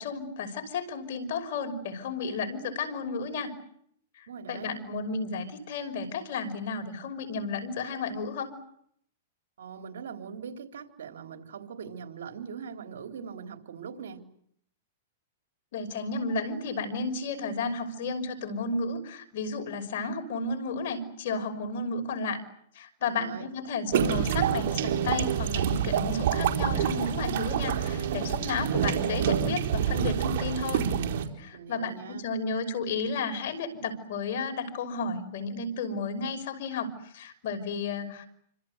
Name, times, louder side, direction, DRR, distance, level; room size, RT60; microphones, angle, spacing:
voice 1, 0.0-3.5 4.2-8.5 15.7-22.4 22.7-31.0 31.4-38.3, left 4 dB, 60° left, 6 dB, 5.8 m, -33 dB
voice 2, 4.3-4.7 9.6-14.2 23.0-23.5 31.5-32.2, right 7 dB, 80° right, 4 dB, 4.0 m, -41 dB
sound 1, 23.9-31.3, right 9 dB, 60° right, 4.2 m, -27 dB
27.5 x 25.5 x 8.2 m, 0.70 s
hypercardioid pair, 150°, 0 cm